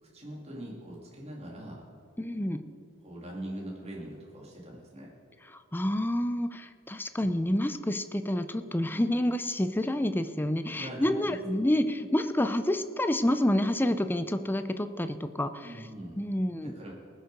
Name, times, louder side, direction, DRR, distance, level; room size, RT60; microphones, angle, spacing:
voice 1, 0.0-1.9 3.0-5.1 10.8-11.4 15.6-16.2 16.6-16.9, right 1 dB, 30° right, -3 dB, 2.3 m, -42 dB
voice 2, 2.2-2.6 5.7-15.7 16.2-16.7, left 1 dB, 10° left, 10 dB, 0.5 m, -28 dB
19.5 x 6.6 x 5.3 m, 2.5 s
head